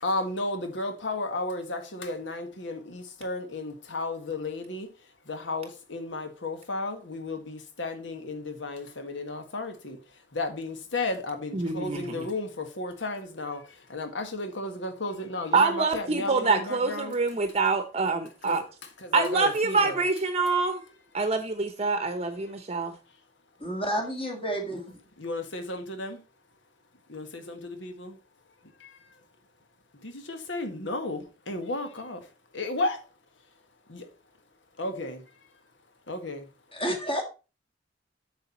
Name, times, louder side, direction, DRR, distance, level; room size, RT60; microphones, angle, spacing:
voice 1, 0.0-4.9 5.3-10.0 10.3-13.6 13.9-17.2 18.4-18.7 19.0-20.0 25.2-26.2 27.1-28.1 28.8-28.9 30.0-32.2 32.5-33.0 33.9-34.1 34.8-35.2 36.1-36.5, left 2 dB, 75° left, 1.6 m, -33 dB
voice 2, 11.5-12.3 15.5-18.6 19.1-20.8 21.1-22.9, right 4 dB, 35° right, 0.8 m, -25 dB
voice 3, 23.6-25.0 36.7-37.2, right 1 dB, 30° left, 2.0 m, -30 dB
8.2 x 6.5 x 4.3 m
head